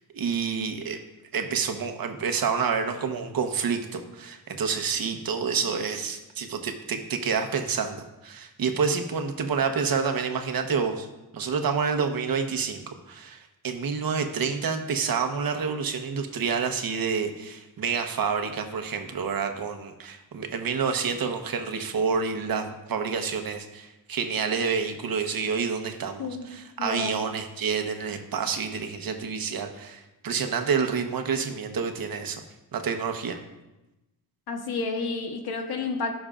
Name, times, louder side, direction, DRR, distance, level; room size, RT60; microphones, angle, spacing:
voice 1, 0.1-1.0 1.3-11.1 11.3-32.4 32.7-33.4, right 6 dB, 70° right, 5 dB, 1.1 m, -28 dB
voice 2, 26.8-27.1 34.5-36.1, left 4 dB, 90° left, 4 dB, 1.2 m, -30 dB
15.0 x 6.3 x 2.5 m, 1.0 s
cardioid pair, 95°, 37 cm